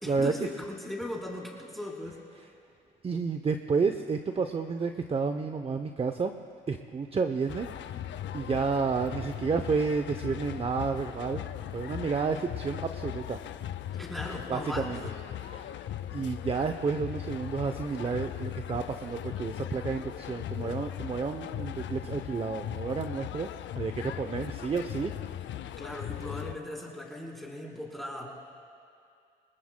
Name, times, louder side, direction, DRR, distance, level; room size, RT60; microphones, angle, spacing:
voice 1, 0.0-2.2 13.9-15.1 25.8-28.3, left 1 dB, ahead, -3 dB, 3.6 m, -38 dB
voice 2, 3.0-6.3 6.7-8.0 8.3-11.4 11.7-13.4 14.5-15.0 15.4-15.7 16.1-23.5 23.8-25.1, right 5 dB, 30° right, 7 dB, 0.6 m, -30 dB
sound 1, 7.5-26.5, left 11 dB, 65° left, 0.5 m, -38 dB
28.0 x 19.5 x 2.2 m, 2.4 s
cardioid pair, 90°, 20 cm